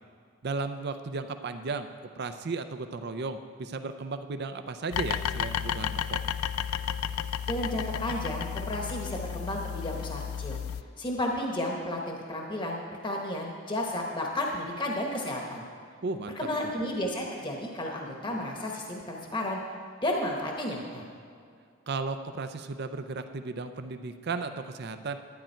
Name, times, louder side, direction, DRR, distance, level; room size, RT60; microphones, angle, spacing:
voice 1, 0.4-1.9 2.2-6.2 16.0-16.4 21.9-25.2, right 3 dB, 50° right, 9 dB, 0.5 m, -35 dB
sound 1, 4.9-10.8, left 8 dB, 80° left, 0.4 m, -32 dB
voice 2, 7.5-10.6 11.0-15.6 16.4-19.6 20.0-21.1, left 1 dB, 25° left, 0 dB, 1.0 m, -32 dB
11.5 x 10.0 x 4.5 m, 2.2 s
head